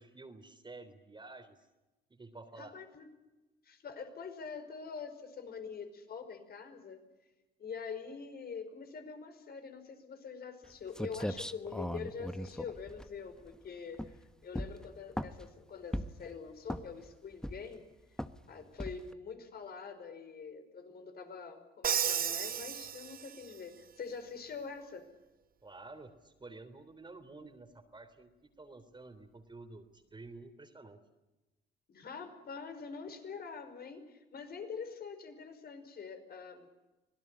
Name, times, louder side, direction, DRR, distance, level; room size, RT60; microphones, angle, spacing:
voice 1, 0.0-1.7 2.1-2.7 18.5-18.7 25.6-31.0, right 3 dB, 20° right, 6 dB, 3.5 m, -51 dB
voice 2, 2.5-3.1 3.6-7.0 7.6-17.8 18.5-25.1 31.9-36.7, left 5 dB, 50° left, 8 dB, 5.4 m, -45 dB
sound 1, 10.6-10.7 10.9-13.5 13.9-14.2 14.5-15.5 15.9-16.3 16.6-17.1 17.4-17.8 18.2-18.4 18.8-19.1, equal, 5° left, 1.3 m, -38 dB
Crash cymbal, 21.8-23.6, right 8 dB, 45° right, 1.1 m, -33 dB
25.5 x 18.5 x 9.9 m, 1.1 s
supercardioid pair, 70°, 20 cm